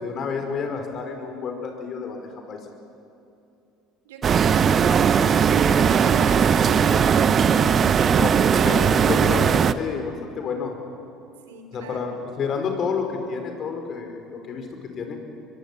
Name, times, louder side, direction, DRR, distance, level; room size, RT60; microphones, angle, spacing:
voice 1, 0.0-2.6 8.1-10.7 11.7-14.7 14.9-15.2, left 5 dB, 45° left, 4 dB, 5.3 m, -29 dB
voice 2, 4.0-5.3 5.7-7.3 11.5-12.2, right 6 dB, 80° right, 6 dB, 3.3 m, -39 dB
sound 1, 4.2-9.7, right 7 dB, 40° right, 1.0 m, -18 dB
24.0 x 23.0 x 9.0 m, 2.7 s
hypercardioid pair, 70°, 0 cm